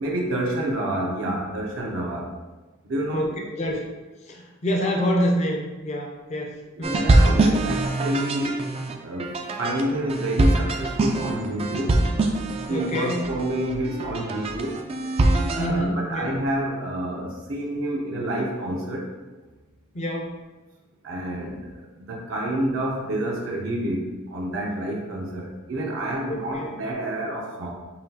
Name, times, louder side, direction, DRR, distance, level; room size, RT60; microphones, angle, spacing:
voice 1, 0.0-2.3 2.8-3.3 6.8-8.7 9.0-12.0 12.7-14.8 15.5-19.1 21.0-27.7, right 1 dB, 65° right, -2 dB, 0.7 m, -28 dB
voice 2, 3.1-3.9 4.2-7.1 12.7-13.2 15.6-16.3 19.9-20.4 26.3-26.8, equal, 35° left, 0 dB, 0.5 m, -27 dB
sound 1, 6.8-15.7, right 2 dB, 30° right, 0.3 m, -23 dB
5.6 x 2.3 x 2.8 m, 1.2 s
head